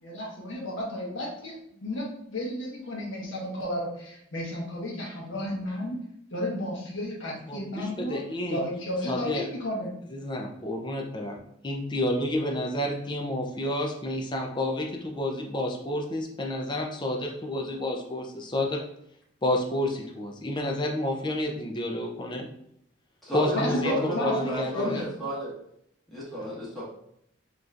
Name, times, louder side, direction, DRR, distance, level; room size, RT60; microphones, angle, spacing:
voice 1, 0.0-6.0 6.3-8.2 8.5-9.9 23.5-25.0 26.4-26.5, left 1 dB, 75° left, -3 dB, 1.3 m, -32 dB
voice 2, 7.5-8.6 9.1-9.4 10.1-11.4 11.6-18.8 19.4-22.5 23.3-25.0, left 1 dB, 25° left, 1 dB, 0.5 m, -30 dB
voice 3, 23.2-25.5 26.1-26.8, equal, ahead, -9 dB, 1.5 m, -32 dB
5.0 x 3.0 x 2.5 m, 0.72 s
head